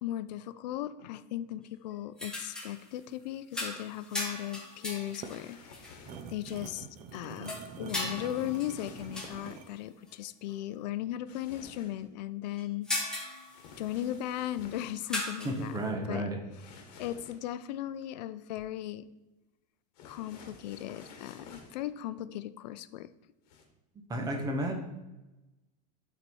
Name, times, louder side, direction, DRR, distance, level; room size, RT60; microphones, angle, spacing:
voice 1, 0.0-5.9 6.3-6.9 7.1-12.9 13.8-15.8 16.1-16.3 17.0-19.1 20.0-23.1, left 13 dB, 85° left, 13 dB, 0.4 m, -37 dB
sound 1, 2.2-2.8 3.5-6.0 6.4-6.6 7.4-9.5 10.1-10.2 10.5-10.6 12.6-14.0 15.1-15.8, left 2 dB, 5° left, 1.1 m, -38 dB
sound 2, 5.0-9.8, right 6 dB, 35° right, 0.6 m, -45 dB
sound 3, 5.2-6.4 7.9-9.6 11.3-12.1 13.5-15.0 16.5-17.6 19.9-21.9 23.4-23.6, left 4 dB, 65° left, 1.5 m, -52 dB
voice 2, 15.4-16.4 24.1-24.8, right 1 dB, 15° right, 3 dB, 1.1 m, -32 dB
8.6 x 4.1 x 4.5 m, 1.0 s
supercardioid pair, 155°, 21 cm